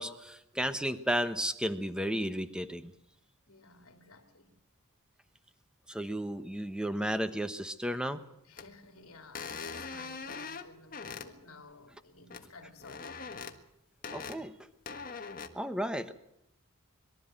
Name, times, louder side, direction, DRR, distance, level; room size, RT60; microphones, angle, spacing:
voice 1, 0.0-2.9 5.9-8.2 14.1-14.5 15.5-16.1, equal, 5° right, 11 dB, 1.1 m, -33 dB
voice 2, 3.5-4.6 8.4-13.4, left 3 dB, 70° left, 5 dB, 3.2 m, -54 dB
sound 1, 8.6-8.7 9.3-11.3 12.3-12.4 12.8-13.6 14.0-14.4 14.9-15.5, left 5 dB, 40° left, 1.6 m, -41 dB
23.0 x 13.0 x 8.9 m, 0.81 s
head